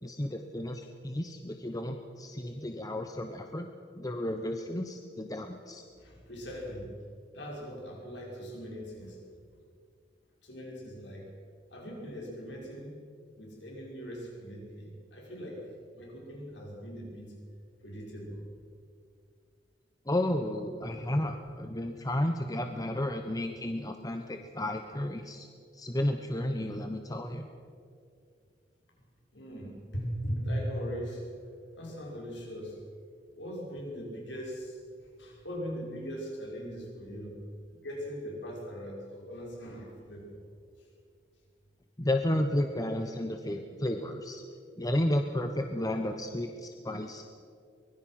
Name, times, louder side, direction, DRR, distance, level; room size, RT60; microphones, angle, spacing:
voice 1, 0.0-3.7 3.9-5.8 20.1-25.5 25.7-27.5 42.0-44.4 44.8-47.2, left 1 dB, 20° left, 5 dB, 1.1 m, -32 dB
voice 2, 6.0-6.9 7.3-9.2 10.4-11.3 11.7-13.0 13.3-15.6 15.9-17.4 17.8-18.5 20.8-21.0 21.5-21.6 29.3-32.8 33.3-37.4 37.7-40.4, equal, 70° left, -2 dB, 5.9 m, -40 dB
24.0 x 22.0 x 6.0 m, 2.3 s
head